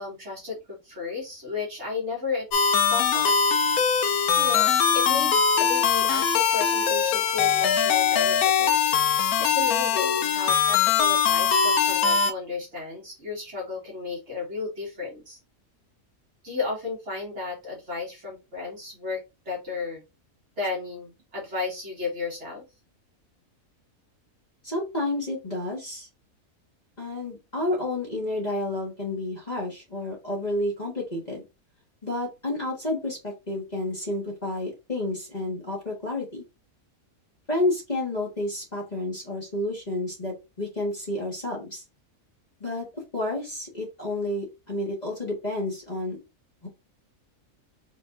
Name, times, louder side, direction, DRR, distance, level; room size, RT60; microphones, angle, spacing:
voice 1, 0.0-2.5 2.9-3.4 4.0-8.9 9.4-15.4 16.4-20.0 20.6-22.6, left 4 dB, 50° right, -3 dB, 2.2 m, -33 dB
sound 1, 2.5-12.3, left 7 dB, 80° left, 1.2 m, -22 dB
voice 2, 24.6-26.1 27.0-31.4 32.0-36.4 37.5-41.8 42.6-42.9 43.1-46.2 46.6-46.7, left 1 dB, 30° left, -3 dB, 1.7 m, -30 dB
4.9 x 3.2 x 2.6 m, 0.25 s
omnidirectional pair, 1.5 m